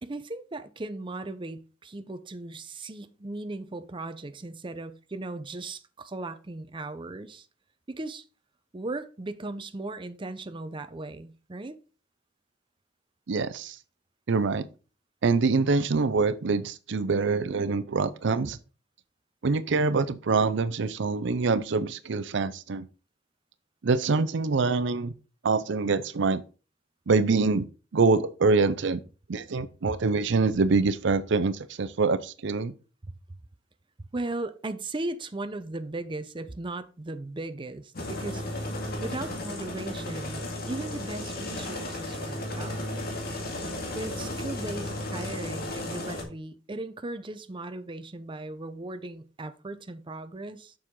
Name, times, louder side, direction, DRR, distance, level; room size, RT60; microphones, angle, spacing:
voice 1, 0.0-7.5 7.9-8.2 8.7-11.8 33.0-33.4 34.0-38.4 39.0-42.8 43.9-50.7, right 2 dB, 25° right, 0.6 m, -37 dB
voice 2, 13.3-13.8 14.3-14.7 15.2-18.6 19.4-22.9 23.8-25.1 25.4-26.4 27.1-27.7 27.9-29.0 29.3-32.7, right 4 dB, 65° right, 0.5 m, -25 dB
sound 1, 37.9-46.2, left 1 dB, 55° left, 2.1 m, -34 dB
7.3 x 6.3 x 3.7 m
head